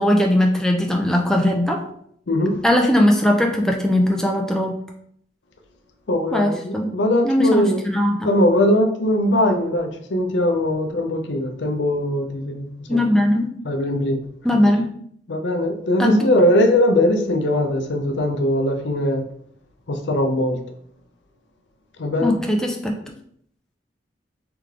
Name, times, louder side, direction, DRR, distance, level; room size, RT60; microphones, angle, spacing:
voice 1, 0.0-1.8 2.6-4.8 6.3-6.9 7.2-8.3 12.9-13.5 14.4-14.9 16.0-16.3 22.2-23.0, left 1 dB, 5° left, 1 dB, 0.5 m, -19 dB
voice 2, 2.3-2.6 6.1-7.8 8.2-13.0 13.6-14.2 15.3-19.2 19.9-20.6 22.0-22.3, left 1 dB, 80° left, 5 dB, 0.6 m, -20 dB
3.4 x 3.2 x 3.7 m, 0.66 s
head